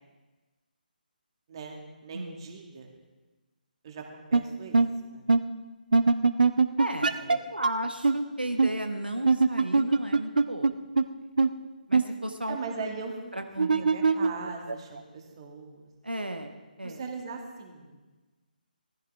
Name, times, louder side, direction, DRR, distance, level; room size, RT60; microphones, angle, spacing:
voice 1, 1.5-2.9 3.8-4.8 5.1-5.2 7.2-7.3 12.5-13.2 13.7-15.9 16.8-17.9, right 4 dB, 35° right, 2 dB, 2.2 m, -39 dB
sound 1, 4.3-4.4 4.7-4.9 5.3-5.4 5.9-7.4 7.6-7.7 8.0-8.1 8.6-8.7 9.3-10.7 11.0-11.1 11.4-11.5 11.9-12.0 13.6-15.0, right 4 dB, 60° right, 0.7 m, -21 dB
voice 2, 6.8-10.8 11.9-12.6 13.3-13.8 16.0-16.5 16.8-17.0, right 1 dB, 85° right, 5 dB, 1.2 m, -34 dB
19.0 x 14.5 x 3.5 m, 1.2 s
figure-of-eight pair, 145°, 5 cm